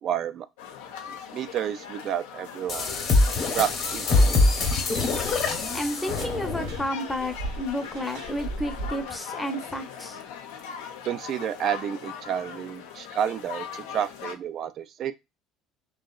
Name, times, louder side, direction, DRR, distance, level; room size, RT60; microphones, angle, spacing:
voice 1, 0.0-0.5 1.1-2.9 3.5-4.3 11.1-15.1, right 9 dB, 50° right, 0.3 m, -30 dB
sound 1, 0.6-14.3, left 8 dB, 90° left, 0.5 m, -40 dB
sound 2, 2.7-6.8, left 3 dB, 50° left, 0.8 m, -24 dB
sound 3, 4.0-9.2, right 2 dB, 85° right, 0.8 m, -40 dB
voice 2, 5.7-10.2, equal, 10° left, 0.6 m, -31 dB
2.8 x 2.1 x 2.2 m
supercardioid pair, 100°, 0 cm